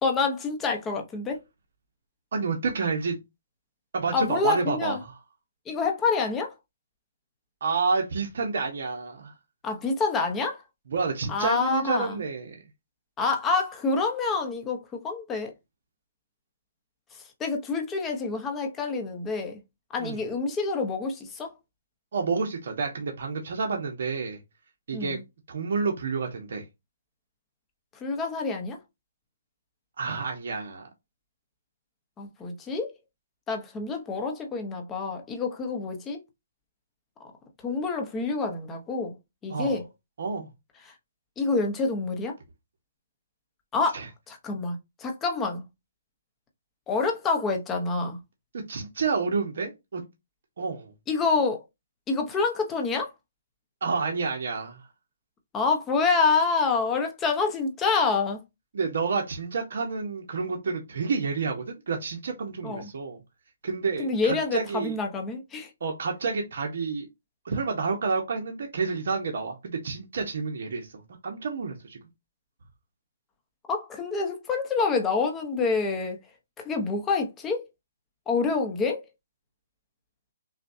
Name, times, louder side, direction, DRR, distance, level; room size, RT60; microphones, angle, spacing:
voice 1, 0.0-1.4 4.1-5.0 5.7-6.5 9.6-10.6 11.3-12.2 13.2-15.5 17.1-19.6 19.9-21.5 24.9-25.2 28.0-28.8 32.2-32.9 33.5-36.2 37.6-39.1 39.4-39.8 41.4-42.3 43.7-45.6 46.9-48.2 51.1-51.6 52.1-53.1 55.5-58.4 62.6-62.9 64.0-65.7 73.7-76.2 76.6-77.6 78.3-79.0, left 4 dB, 10° left, 0.9 m, -27 dB
voice 2, 2.3-3.2 3.9-5.1 7.6-9.3 10.9-12.6 20.0-20.2 22.1-24.4 24.9-25.2 25.5-26.6 30.0-30.9 39.5-39.8 40.2-40.5 43.9-44.1 48.7-50.0 50.6-50.9 53.8-54.8 58.7-63.2 63.6-64.9 65.8-67.1 67.4-72.0, right 4 dB, 60° right, 1.1 m, -29 dB
6.0 x 2.4 x 2.7 m
hypercardioid pair, 160°, 0 cm